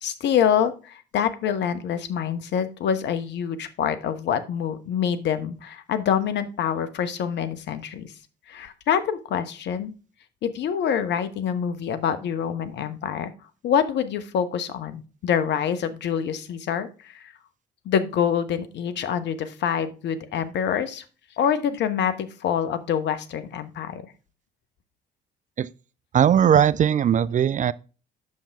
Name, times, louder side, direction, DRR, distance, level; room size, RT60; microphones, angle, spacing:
voice 1, 0.0-8.1 8.5-9.9 10.4-13.3 13.6-17.3 17.8-21.0 21.4-24.0, left 8 dB, 60° left, 1.1 m, -26 dB
voice 2, 26.1-27.7, right 9 dB, 40° right, 0.5 m, -19 dB
9.3 x 7.2 x 3.5 m
hypercardioid pair, 55°, 21 cm